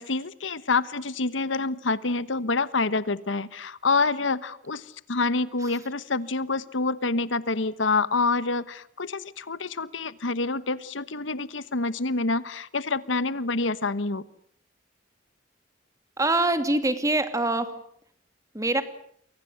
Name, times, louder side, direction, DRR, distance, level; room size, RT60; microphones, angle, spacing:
voice 1, 0.0-14.2, left 3 dB, 80° left, 15 dB, 1.2 m, -27 dB
voice 2, 16.2-17.8 18.5-18.8, right 2 dB, 15° right, 9 dB, 2.5 m, -24 dB
29.5 x 24.0 x 7.9 m, 0.65 s
head